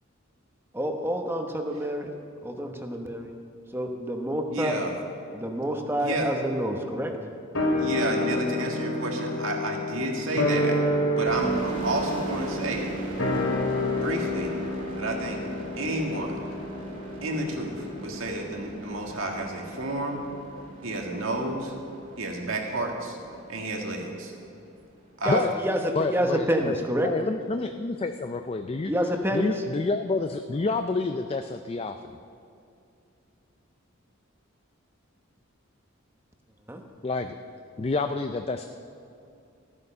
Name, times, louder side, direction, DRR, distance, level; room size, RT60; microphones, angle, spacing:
voice 1, 0.7-2.1 2.4-3.3 3.7-4.8 5.3-7.1 25.2-27.1 28.9-29.5 36.7-36.8, equal, 10° right, 3 dB, 0.9 m, -28 dB
voice 2, 4.5-5.0 6.0-6.3 7.8-10.8 11.1-12.9 14.0-14.6 15.0-15.4 15.8-16.4 17.2-20.2 20.8-21.7 22.2-23.2 23.5-24.3 25.2-25.4, right 2 dB, 75° right, 1 dB, 1.9 m, -30 dB
sound 1, 7.5-18.2 18.4-18.5, left 1 dB, 90° left, 3.0 m, -29 dB
sound 2, 11.3-24.7, right 1 dB, 40° right, 2.1 m, -39 dB
voice 3, 26.0-28.9 29.3-32.2 37.0-37.4 37.8-38.7, left 3 dB, 30° left, 7 dB, 0.4 m, -28 dB
14.5 x 9.6 x 5.5 m, 2.6 s
head